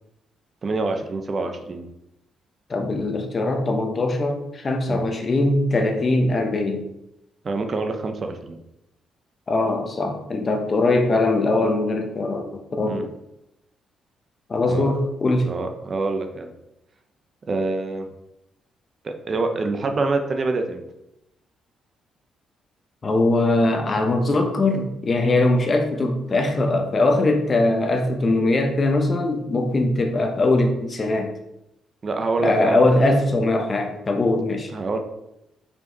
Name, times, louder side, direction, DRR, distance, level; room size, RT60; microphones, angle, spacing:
voice 1, 0.6-1.8 4.9-5.0 7.4-8.6 12.9-13.1 14.6-14.9 15.4-16.5 17.5-18.1 19.0-20.8 32.0-33.1 34.7-35.0, right 3 dB, 40° right, 6 dB, 0.8 m, -26 dB
voice 2, 2.7-6.9 9.5-13.0 14.5-15.5 23.0-31.3 32.4-34.7, left 2 dB, 35° left, 4 dB, 1.1 m, -21 dB
5.6 x 4.7 x 4.0 m, 0.86 s
cardioid pair, 90°, 0 cm